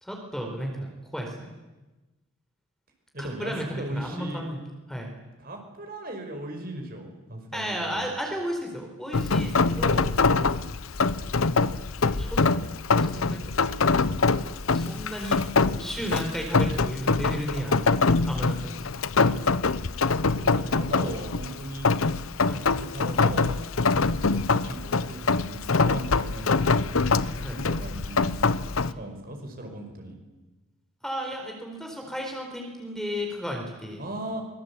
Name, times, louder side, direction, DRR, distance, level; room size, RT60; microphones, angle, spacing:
voice 1, 0.0-1.5 3.2-4.6 4.9-5.1 7.5-10.1 12.2-12.4 13.0-13.6 14.7-15.4 15.8-17.8 18.2-18.8 22.5-22.6 27.4-27.6 28.8-28.9 31.0-34.0, equal, ahead, 2 dB, 4.2 m, -34 dB
voice 2, 3.1-4.4 5.4-8.1 20.3-21.9 22.8-23.6 24.3-26.8 27.5-28.3 29.0-30.2 34.0-34.4, right 1 dB, 45° right, 3 dB, 5.3 m, -38 dB
Rain, 9.1-28.9, left 4 dB, 75° left, 0.9 m, -24 dB
24.5 x 22.5 x 8.5 m, 1.1 s
head